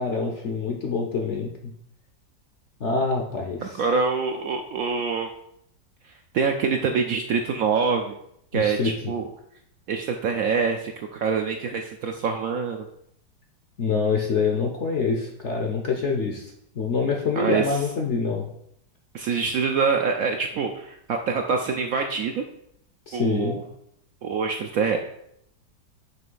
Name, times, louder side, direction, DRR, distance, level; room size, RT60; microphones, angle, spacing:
voice 1, 0.0-1.7 2.8-3.8 8.5-8.9 13.8-18.5 23.1-23.6, left 4 dB, 60° left, 1 dB, 0.8 m, -26 dB
voice 2, 3.6-5.3 6.3-8.2 8.5-9.2 9.9-12.9 17.4-17.8 19.1-22.4 23.1-23.6 24.2-25.0, right 5 dB, 70° right, 4 dB, 0.8 m, -25 dB
5.9 x 3.2 x 5.3 m, 0.72 s
omnidirectional pair, 1.9 m